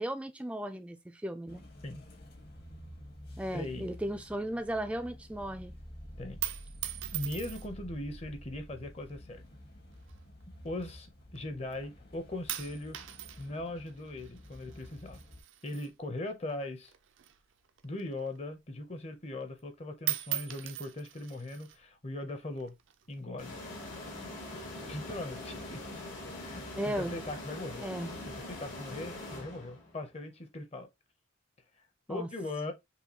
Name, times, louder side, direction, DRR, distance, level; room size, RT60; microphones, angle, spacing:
voice 1, 0.0-1.6 3.4-5.8 26.7-27.2 27.8-28.1 32.1-32.3, right 1 dB, 5° right, 0.3 m, -36 dB
sound 1, 1.5-15.4, equal, 50° left, 1.1 m, -50 dB
voice 2, 3.5-3.9 6.2-6.4 7.1-9.4 10.6-13.0 13.4-15.2 15.6-16.9 17.8-22.7 23.1-23.6 24.9-25.8 26.4-27.8 28.2-30.9 32.1-32.7, left 2 dB, 30° left, 0.7 m, -39 dB
sound 2, 6.2-7.9 8.7-9.2 10.0-11.4 11.7-12.1 12.5-16.6 16.8-18.5 18.9-19.0 19.3-19.7 20.0-21.8 22.6-23.2, right 14 dB, 70° right, 0.5 m, -40 dB
sound 3, 23.4-30.0, left 1 dB, 80° left, 2.6 m, -43 dB
5.6 x 2.3 x 2.8 m
head